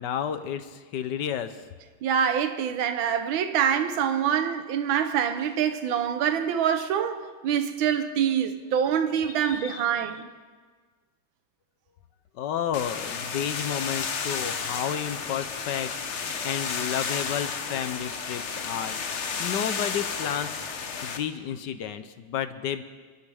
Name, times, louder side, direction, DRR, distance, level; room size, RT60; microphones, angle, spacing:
voice 1, 0.0-1.6 9.4-10.0 12.4-19.0 19.4-20.6 21.0-22.8, left 9 dB, 70° left, 1.2 m, -31 dB
voice 2, 2.0-10.3, right 8 dB, 80° right, 1.7 m, -25 dB
sound 1, 12.7-21.2, left 5 dB, 50° left, 0.9 m, -32 dB
27.0 x 12.0 x 3.5 m
omnidirectional pair, 2.2 m